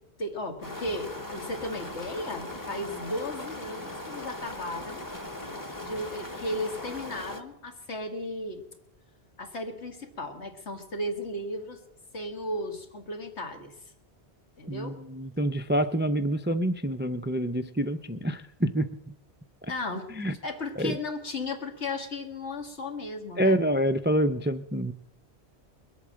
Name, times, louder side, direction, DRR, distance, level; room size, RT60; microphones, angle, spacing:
voice 1, 0.2-5.0 5.8-8.6 9.4-11.8 12.1-13.7 14.6-15.0 19.7-20.1 20.4-23.6, left 1 dB, 85° left, 4 dB, 2.1 m, -35 dB
sound 1, 0.6-7.4, left 1 dB, 20° left, 1.1 m, -39 dB
voice 2, 14.7-18.9 19.6-19.7 20.2-20.3 20.8-21.0 23.4-24.9, right 1 dB, 15° right, 11 dB, 0.3 m, -27 dB
21.5 x 8.3 x 7.5 m, 0.86 s
omnidirectional pair, 1.1 m